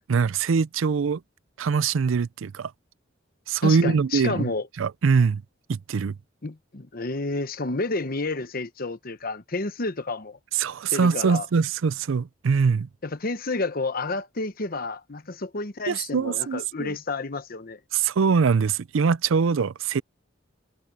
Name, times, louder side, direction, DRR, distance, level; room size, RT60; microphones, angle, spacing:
voice 1, 0.1-1.2 1.6-2.7 3.5-4.5 4.8-5.4 5.7-6.2 10.5-12.9 15.9-16.9 17.9-20.0, right 5 dB, 85° right, 0.5 m, -23 dB
voice 2, 3.6-4.7 6.4-10.4 10.9-11.5 13.0-17.8, left 3 dB, 50° left, 1.0 m, -30 dB
head